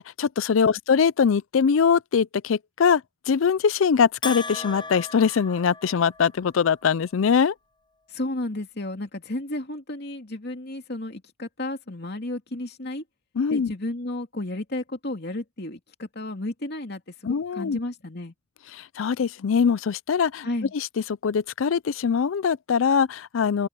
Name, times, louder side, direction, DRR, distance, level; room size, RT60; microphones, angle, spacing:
voice 1, 0.0-7.5 13.4-13.7 17.2-17.8 18.7-20.5 20.7-20.9 21.2-23.7, left 6 dB, 90° left, 0.4 m, -22 dB
Bell, 4.2-6.4, left 4 dB, 25° left, 0.9 m, -36 dB
voice 2, 8.1-13.0 13.5-18.3 20.4-20.7, left 1 dB, 55° left, 2.8 m, -33 dB
open air
head